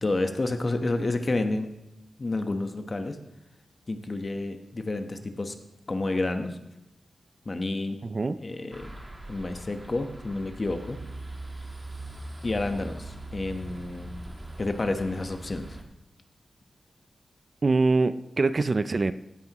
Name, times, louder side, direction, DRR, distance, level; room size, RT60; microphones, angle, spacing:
voice 1, 0.0-1.7 2.2-3.2 3.9-5.5 5.9-6.6 7.5-8.0 8.4-8.9 9.3-11.0 12.4-14.1 14.6-15.8, left 2 dB, 35° left, 6 dB, 1.1 m, -29 dB
voice 2, 8.0-8.4 17.6-19.1, right 3 dB, 40° right, 13 dB, 0.4 m, -24 dB
sound 1, 8.7-15.8, right 2 dB, 15° right, 1.4 m, -41 dB
16.0 x 9.7 x 3.0 m, 0.91 s
wide cardioid pair, 110°, 0 cm